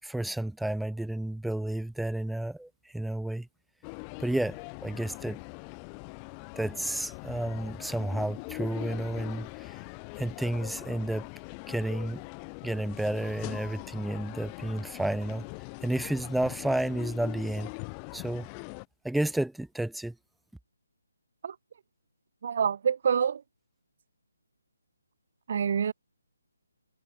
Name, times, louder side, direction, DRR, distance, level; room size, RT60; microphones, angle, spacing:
voice 1, 0.0-3.5 4.2-5.4 6.6-9.8 10.2-11.3 11.7-12.2 12.6-15.4 15.8-17.7 18.1-18.5 19.0-20.1, right 1 dB, ahead, 4.6 m, -31 dB
sound 1, 3.8-18.8, left 40 dB or more, 20° left, 6.2 m, -42 dB
voice 2, 22.4-23.4 25.5-25.9, right 7 dB, 45° right, 3.1 m, -26 dB
figure-of-eight pair, 150°, 0 cm